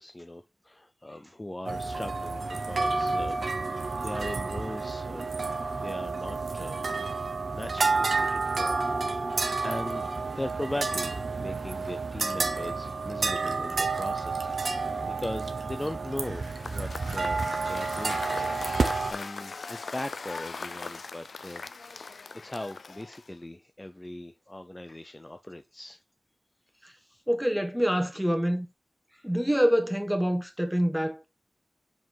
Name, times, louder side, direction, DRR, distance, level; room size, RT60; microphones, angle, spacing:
voice 1, 0.0-3.4 3.6-5.2 5.8-6.8 7.5-8.8 9.1-10.1 10.3-11.1 11.4-18.2 18.6-21.7 22.3-26.0, left 1 dB, 20° left, 0.6 m, -39 dB
sound 1, 1.6-19.1, right 4 dB, 70° right, 0.9 m, -30 dB
Cheering / Applause / Crowd, 16.4-23.4, left 4 dB, 75° left, 0.5 m, -40 dB
voice 2, 27.3-28.7 29.2-31.3, equal, 5° right, 1.4 m, -26 dB
5.8 x 5.1 x 4.6 m
wide cardioid pair, 100°, 0 cm